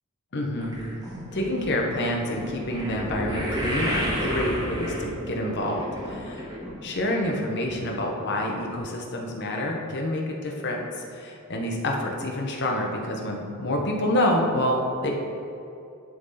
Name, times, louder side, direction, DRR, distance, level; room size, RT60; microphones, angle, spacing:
voice 1, 0.3-0.8 1.3-6.3 6.8-10.8 11.1-15.1, left 1 dB, 55° left, 1 dB, 1.0 m, -27 dB
sound 1, 0.6-7.0 7.3-7.7 8.3-8.4 8.7-8.8, equal, 20° right, 1.6 m, -32 dB
10.5 x 3.9 x 4.2 m, 2.7 s
head